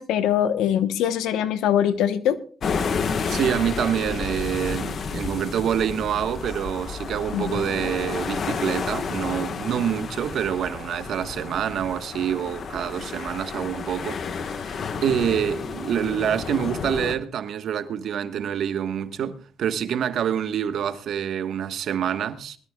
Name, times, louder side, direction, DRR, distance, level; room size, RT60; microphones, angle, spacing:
voice 1, 0.0-2.4 7.3-7.7, left 10 dB, 90° left, 1.0 m, -23 dB
sound 1, 2.6-17.2, left 5 dB, 55° left, 1.3 m, -31 dB
voice 2, 3.3-22.6, right 9 dB, 70° right, 1.2 m, -26 dB
21.5 x 13.5 x 2.3 m
cardioid pair, 90°, 0 cm